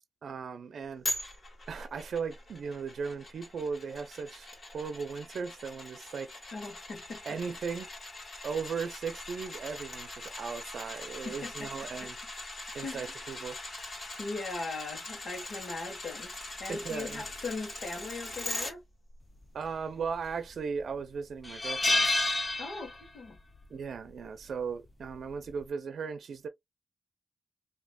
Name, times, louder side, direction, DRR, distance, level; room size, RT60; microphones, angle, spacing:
voice 1, 0.2-1.1 1.7-6.3 7.2-7.9 8.4-12.2 12.7-13.6 16.7-17.2 19.5-22.1 23.7-26.5, right 5 dB, 80° right, 0.6 m, -37 dB
sound 1, 1.0-18.7 19.1-19.2, left 2 dB, 40° left, 1.7 m, -42 dB
voice 2, 6.5-7.2 11.2-11.7 12.0-12.1 12.8-13.1 14.2-16.3 16.6-18.8 22.6-23.4, left 3 dB, 70° left, 1.3 m, -39 dB
sound 2, 20.0-20.6 20.9-21.0 21.4-23.3 23.5-23.8 25.0-25.3, left 2 dB, 25° left, 0.5 m, -29 dB
5.1 x 2.8 x 2.3 m
wide cardioid pair, 165°, 0 cm